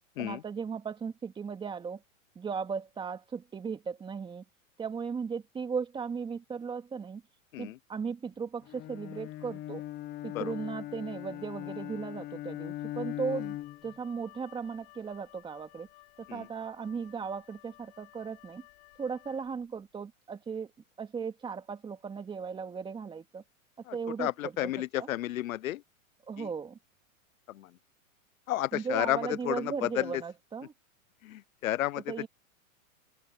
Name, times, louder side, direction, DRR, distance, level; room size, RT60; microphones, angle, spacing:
voice 1, 0.2-2.0 2.3-4.4 4.8-7.2 7.6-9.8 10.2-13.6 13.8-15.9 16.2-18.6 19.0-20.7 21.0-23.4 23.9-25.1 26.3-26.8 28.7-30.7 32.0-32.3, right 6 dB, 10° right, 2.6 m, -37 dB
Bowed string instrument, 8.7-13.9, left 14 dB, 20° left, 0.8 m, -39 dB
Wind instrument woodwind instrument, 13.3-19.8, left 21 dB, 50° left, 7.6 m, -57 dB
voice 2, 23.9-25.8 26.4-26.5 28.5-29.2 29.4-29.6 31.3-32.0, left 14 dB, 75° left, 0.8 m, -31 dB
supercardioid pair, 155°, 41 cm